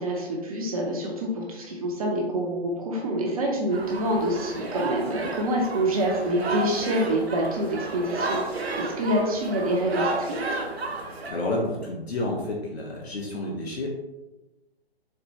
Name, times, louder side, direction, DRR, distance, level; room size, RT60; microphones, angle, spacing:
voice 1, 0.0-10.6, right 1 dB, 35° right, -1 dB, 0.6 m, -26 dB
sound 1, 3.7-11.3, right 2 dB, 75° right, 0.7 m, -32 dB
voice 2, 11.3-13.9, left 2 dB, 75° left, -1 dB, 0.7 m, -30 dB
4.3 x 2.1 x 2.7 m, 1.0 s
figure-of-eight pair, 130°, 32 cm